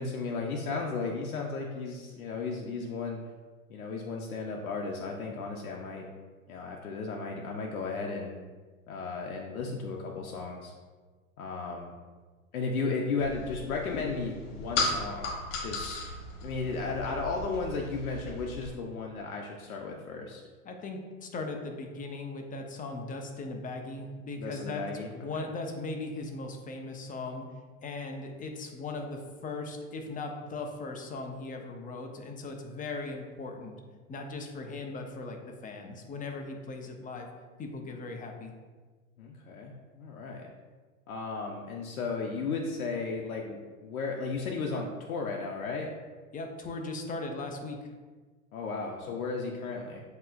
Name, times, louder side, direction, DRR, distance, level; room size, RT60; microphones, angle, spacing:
voice 1, 0.0-3.2 3.7-6.0 6.5-8.4 8.9-10.7 11.4-11.9 12.5-15.3 15.6-16.0 16.4-20.4 24.4-25.1 39.2-40.5 41.1-45.9 48.5-50.0, left 4 dB, 85° left, 0 dB, 0.7 m, -34 dB
sound 1, 13.2-18.7, left 3 dB, 65° left, 1.2 m, -36 dB
voice 2, 20.6-24.8 25.1-27.4 27.8-33.8 34.1-37.3 37.6-38.5 46.3-47.9, left 3 dB, 20° left, 3 dB, 0.6 m, -38 dB
7.6 x 2.9 x 2.4 m, 1.4 s
hypercardioid pair, 100°, 42 cm